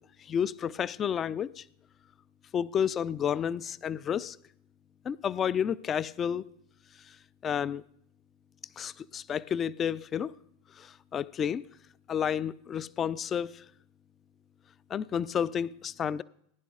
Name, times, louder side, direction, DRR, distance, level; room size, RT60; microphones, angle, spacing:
voice 1, 0.2-1.6 2.5-4.4 5.0-6.4 7.1-7.2 7.4-7.8 8.8-10.3 10.8-11.6 12.1-13.6 14.9-16.2, left 8 dB, 30° left, 0.3 m, -31 dB
18.0 x 10.5 x 2.4 m
hypercardioid pair, 95°, 0 cm